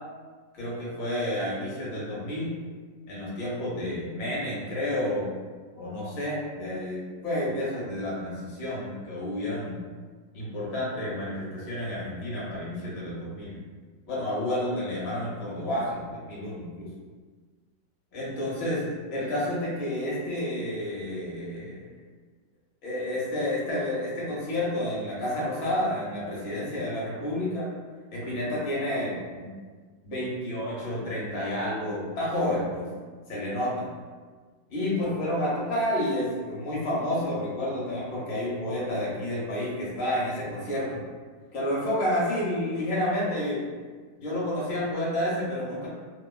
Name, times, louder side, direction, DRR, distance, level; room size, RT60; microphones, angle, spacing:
voice 1, 0.5-2.6 3.1-5.3 5.7-9.8 10.3-13.6 14.1-16.9 18.1-21.9 22.8-27.7 28.1-29.5 30.0-32.9 33.3-33.9 34.7-41.0 41.5-43.6 44.2-45.9, left 1 dB, 50° left, -6 dB, 0.9 m, -30 dB
3.0 x 2.3 x 2.2 m, 1.5 s
omnidirectional pair, 1.9 m